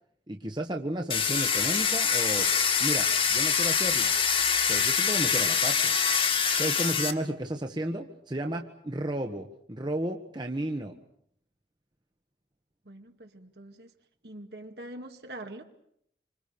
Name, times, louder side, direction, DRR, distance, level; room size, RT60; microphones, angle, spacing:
voice 1, 0.3-2.5 2.8-4.1 4.7-6.0 6.6-11.0, right 1 dB, 25° right, 4 dB, 1.4 m, -33 dB
Domestic sounds home sounds, 1.1-7.1, left 6 dB, 30° left, 1.9 m, -25 dB
voice 2, 12.9-13.9 14.2-15.6, right 1 dB, 70° right, 4 dB, 2.3 m, -44 dB
27.0 x 26.5 x 6.9 m, 0.70 s
head